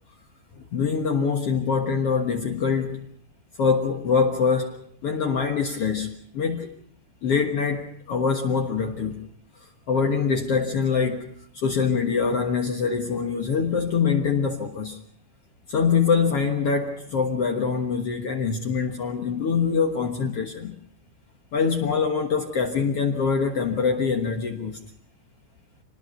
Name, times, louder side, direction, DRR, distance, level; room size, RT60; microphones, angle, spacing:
voice 1, 0.7-3.1 3.6-6.7 7.2-9.3 9.9-15.0 15.7-20.8 21.5-24.8, left 5 dB, 55° left, 3 dB, 2.1 m, -24 dB
26.0 x 20.0 x 5.8 m, 0.63 s
omnidirectional pair, 3.7 m